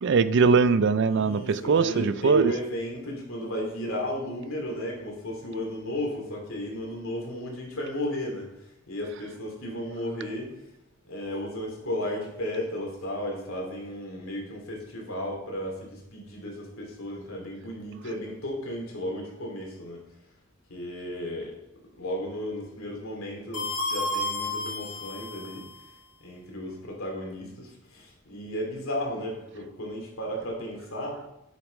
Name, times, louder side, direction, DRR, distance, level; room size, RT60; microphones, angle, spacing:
voice 1, 0.0-2.5, right 5 dB, 60° right, 14 dB, 0.4 m, -21 dB
voice 2, 1.0-10.6 11.0-20.0 20.7-21.6 22.0-25.7 26.2-31.2, left 1 dB, 70° left, 0 dB, 2.9 m, -34 dB
sound 1, 23.5-25.9, left 2 dB, 55° left, 3.3 m, -32 dB
8.2 x 6.3 x 5.3 m, 0.87 s
head